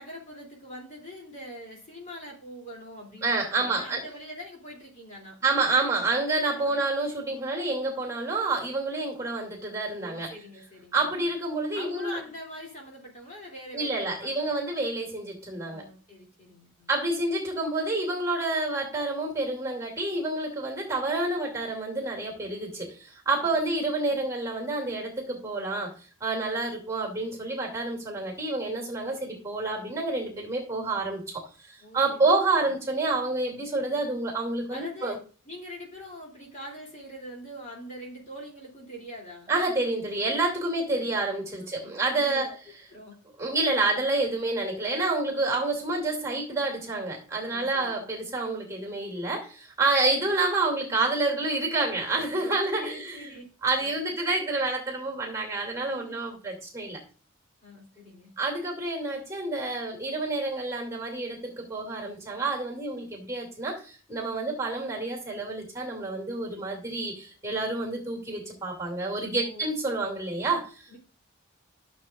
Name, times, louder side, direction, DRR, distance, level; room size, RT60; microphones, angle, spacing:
voice 1, 0.0-5.4 6.5-6.8 10.0-11.2 11.7-14.6 15.7-16.9 23.4-23.6 24.1-24.2 31.8-32.3 34.7-35.2 35.4-39.5 40.9-41.9 42.2-42.6 42.9-43.2 47.5-48.2 50.0-50.2 52.4-54.2 55.8-56.2 57.6-58.3 69.2-69.7 70.9-71.0, equal, 35° left, -1 dB, 3.0 m, -44 dB
voice 2, 3.2-4.0 5.4-10.3 10.9-12.2 13.7-15.8 16.9-25.9 26.2-35.2 39.5-42.5 43.4-57.0 58.4-70.9, right 2 dB, 15° right, 0 dB, 2.6 m, -28 dB
13.5 x 7.0 x 2.5 m, 0.37 s
head